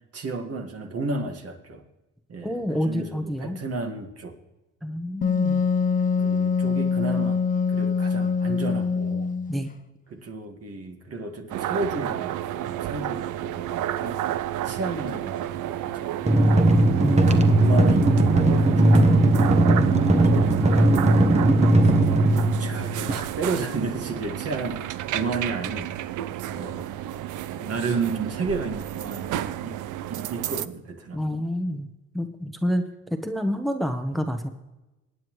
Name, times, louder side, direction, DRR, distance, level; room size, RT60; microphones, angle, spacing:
voice 1, 0.1-1.8 2.3-4.3 5.5-5.7 6.2-7.4 7.7-9.3 10.1-14.2 14.6-16.6 17.1-19.2 20.2-20.9 21.9-25.9 26.5-26.9 27.5-29.8 30.1-31.4, right 3 dB, 50° right, 4 dB, 1.9 m, -33 dB
voice 2, 2.4-3.7 4.8-5.6 9.5-9.7 17.0-17.6 31.1-31.9 32.1-34.5, equal, ahead, 7 dB, 1.0 m, -28 dB
Wind instrument woodwind instrument, 5.2-9.6, left 5 dB, 30° left, 0.6 m, -24 dB
sound 1, 11.5-30.7, right 13 dB, 80° right, 0.6 m, -31 dB
sound 2, 16.2-23.1, right 1 dB, 20° right, 1.2 m, -18 dB
23.0 x 9.2 x 3.1 m, 1.1 s
cardioid pair, 90°, 30 cm